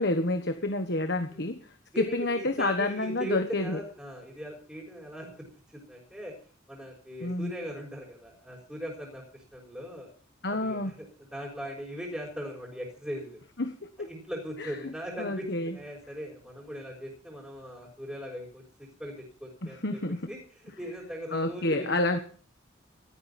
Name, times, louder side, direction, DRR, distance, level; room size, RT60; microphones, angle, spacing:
voice 1, 0.0-1.6 2.0-3.8 7.2-7.5 10.4-10.9 13.6-14.1 14.6-14.9 15.2-15.8 19.6-20.3 21.3-22.2, left 2 dB, 55° left, 7 dB, 1.4 m, -29 dB
voice 2, 1.9-5.4 5.9-6.3 6.7-10.1 10.5-11.1 11.3-13.4 14.0-20.0 20.3-22.2, equal, 5° right, -4 dB, 5.8 m, -39 dB
17.5 x 14.5 x 4.3 m, 0.42 s
head